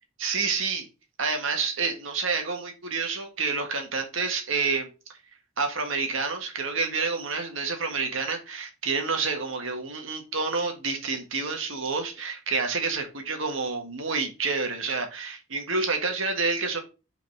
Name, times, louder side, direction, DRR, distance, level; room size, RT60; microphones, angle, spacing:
voice 1, 0.2-0.8 1.2-4.9 5.6-16.8, right 4 dB, 75° right, 1.6 m, -28 dB
5.4 x 4.1 x 5.3 m
head